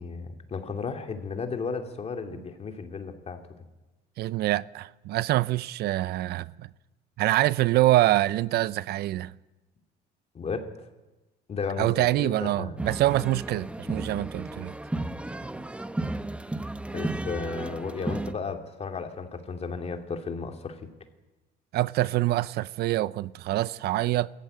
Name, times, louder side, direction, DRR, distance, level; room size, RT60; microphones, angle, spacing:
voice 1, 0.0-3.6 10.3-10.7 11.5-12.8 16.9-20.8, left 5 dB, 40° left, 2.6 m, -34 dB
voice 2, 4.2-6.7 7.2-9.3 11.8-14.7 21.7-24.3, right 15 dB, 70° right, 0.6 m, -25 dB
sound 1, 12.8-18.3, right 2 dB, 5° right, 0.8 m, -34 dB
21.5 x 14.0 x 9.6 m
cardioid pair, 110°, 17 cm